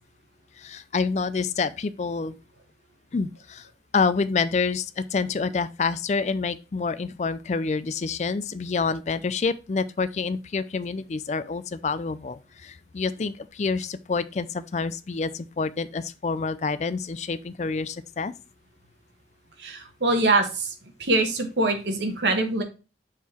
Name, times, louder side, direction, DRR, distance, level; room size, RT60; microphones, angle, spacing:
voice 1, 0.6-2.4 3.1-3.6 3.9-18.3, left 4 dB, 40° left, 0.4 m, -27 dB
voice 2, 19.6-20.7 21.0-22.6, right 2 dB, 85° right, 1.3 m, -23 dB
6.3 x 3.7 x 4.3 m
head